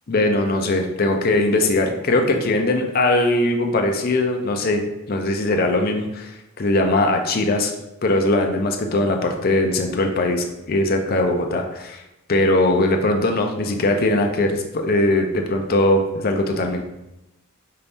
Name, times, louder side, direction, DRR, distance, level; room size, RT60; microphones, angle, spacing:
voice 1, 0.1-4.8 5.1-7.7 8.0-12.0 12.3-16.8, left 2 dB, 45° left, 3 dB, 0.6 m, -20 dB
5.5 x 2.6 x 3.4 m, 0.90 s
head